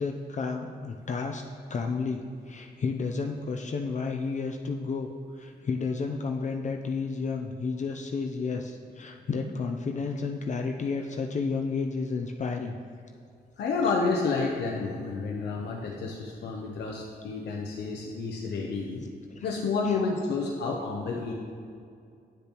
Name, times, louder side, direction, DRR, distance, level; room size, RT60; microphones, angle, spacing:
voice 1, 0.0-1.4 1.7-12.8 19.3-19.5 19.8-20.0, left 4 dB, 45° left, 3 dB, 0.5 m, -31 dB
voice 2, 13.6-19.0 19.4-21.3, left 4 dB, 90° left, -1 dB, 0.7 m, -30 dB
9.5 x 6.8 x 2.9 m, 2.4 s
cardioid pair, 90°, 17 cm